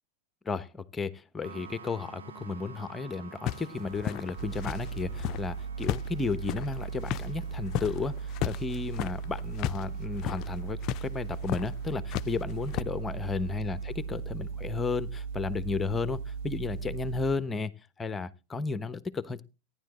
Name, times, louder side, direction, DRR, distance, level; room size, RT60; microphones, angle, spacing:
voice 1, 0.4-17.7 18.0-19.4, left 4 dB, 15° left, 1.1 m, -33 dB
sound 1, 1.4-13.9, right 6 dB, 85° right, 1.5 m, -52 dB
sound 2, 3.5-5.5 5.8-9.8 10.1-10.5 10.8-11.0 11.5-11.7 12.1-12.8, left 12 dB, 45° left, 0.5 m, -34 dB
sound 3, 4.4-17.3, right 6 dB, 60° right, 1.6 m, -37 dB
14.5 x 10.5 x 3.1 m
hypercardioid pair, 105°, 0 cm